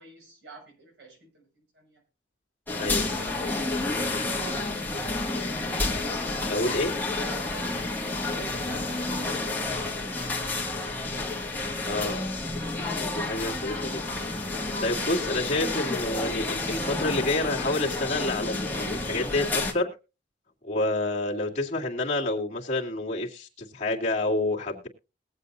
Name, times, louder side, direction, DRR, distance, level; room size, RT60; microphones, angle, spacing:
voice 1, 0.0-2.0 2.9-5.1 8.3-10.8 14.9-15.6, right 1 dB, 75° right, 0 dB, 6.5 m, -48 dB
sound 1, 2.7-19.7, left 2 dB, 10° left, 2.2 m, -30 dB
voice 2, 6.5-6.9 11.8-12.2 13.0-14.0 14.8-19.9 20.6-24.9, left 2 dB, 40° left, -3 dB, 2.6 m, -28 dB
21.5 x 8.1 x 2.7 m, 0.30 s
head